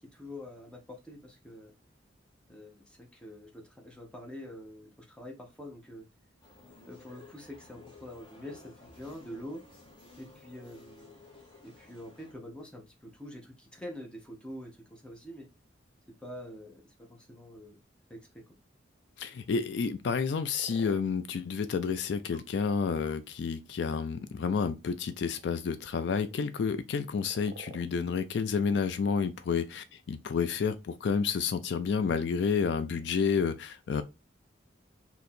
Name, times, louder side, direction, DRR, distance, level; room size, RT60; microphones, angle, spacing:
voice 1, 0.0-1.7 2.5-6.1 6.9-9.6 10.2-11.2 11.6-15.5 16.2-16.8 17.1-17.8 18.1-18.5, left 1 dB, 5° left, 0.7 m, -45 dB
sound 1, 6.4-12.3, left 3 dB, 25° left, 1.0 m, -54 dB
voice 2, 19.2-34.0, left 5 dB, 65° left, 0.3 m, -30 dB
sound 2, 20.4-21.0 22.3-22.4 23.0-23.2 24.0-24.6 25.1-26.4 27.1-27.9 28.7-28.8, right 4 dB, 55° right, 0.4 m, -50 dB
2.8 x 2.7 x 4.2 m
head